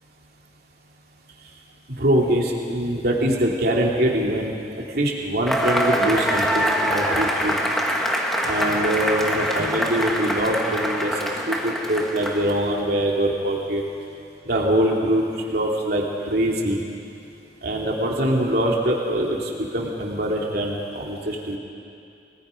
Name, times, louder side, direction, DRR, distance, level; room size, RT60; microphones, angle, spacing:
voice 1, 2.0-7.5 8.4-13.8 14.4-16.8 17.6-21.6, right 1 dB, 60° right, -2 dB, 2.9 m, -23 dB
Cheering / Applause / Crowd, 5.5-12.7, equal, ahead, 1.9 m, -24 dB
29.5 x 19.5 x 5.2 m, 2.5 s
head